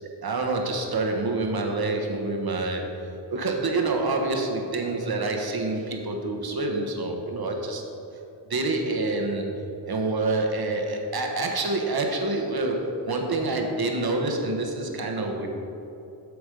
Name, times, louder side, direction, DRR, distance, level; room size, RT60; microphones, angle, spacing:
voice 1, 0.2-7.8 8.5-9.5 9.9-15.5, right 2 dB, 55° right, 2 dB, 1.2 m, -27 dB
8.1 x 7.0 x 5.2 m, 2.9 s
wide cardioid pair, 95°, 45 cm